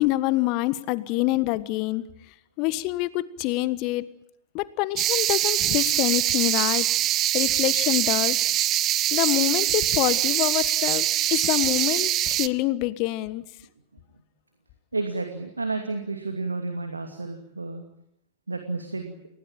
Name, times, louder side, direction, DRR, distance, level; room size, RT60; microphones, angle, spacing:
voice 1, 0.0-2.0 2.6-4.1 4.5-8.4 9.1-13.4, left 18 dB, 45° left, 17 dB, 1.3 m, -26 dB
sound 1, 5.0-12.5, right 13 dB, 35° right, 0.9 m, -23 dB
voice 2, 14.9-17.8 18.5-19.2, right 3 dB, 80° right, 5 dB, 2.6 m, -31 dB
29.5 x 18.0 x 8.9 m, 0.77 s
figure-of-eight pair, 90°, 0 cm